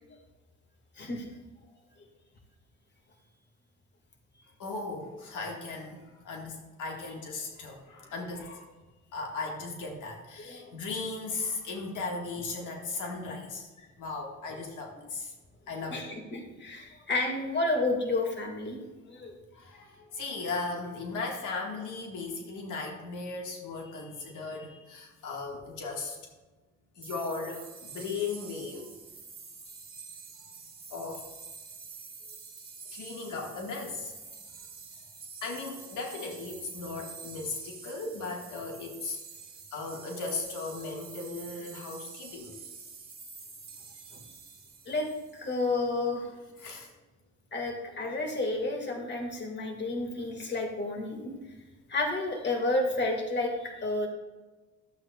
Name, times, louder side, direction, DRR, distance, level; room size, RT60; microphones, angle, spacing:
voice 1, 1.0-1.3 10.4-10.7 14.5-14.6 15.9-18.8 19.1-19.4 44.1-44.2 44.9-46.3 47.5-51.3 51.9-54.1, left 2 dB, 35° left, 2 dB, 1.9 m, -31 dB
voice 2, 4.6-8.7 9.1-15.3 15.7-16.1 19.5-26.2 27.0-28.9 30.4-30.5 30.9-31.3 32.9-34.1 35.4-39.2 39.7-42.5 46.6-46.9, left 3 dB, 80° left, 0 dB, 1.6 m, -37 dB
sound 1, 27.0-45.7, right 4 dB, 30° right, 1.5 m, -47 dB
12.5 x 7.8 x 2.3 m, 1.2 s
cardioid pair, 90°, 30 cm